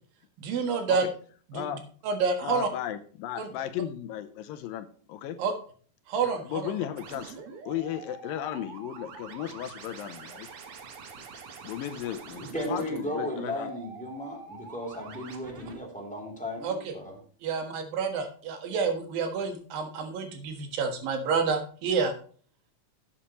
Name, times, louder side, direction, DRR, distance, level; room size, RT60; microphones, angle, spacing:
voice 1, 0.4-1.1 1.5-1.6 2.0-2.7 3.4-3.5 5.4-5.5 6.1-6.7 16.6-16.9 17.4-22.1, right 5 dB, 75° right, 5 dB, 3.2 m, -29 dB
voice 2, 2.4-5.4 6.2-7.4 7.7-10.5 11.6-13.7, left 11 dB, 80° left, 10 dB, 2.5 m, -35 dB
sound 1, 7.0-15.8, right 5 dB, 55° right, 1.6 m, -45 dB
voice 3, 12.4-17.2, left 1 dB, ahead, -1 dB, 2.4 m, -35 dB
11.5 x 8.9 x 3.0 m, 0.43 s
omnidirectional pair, 4.2 m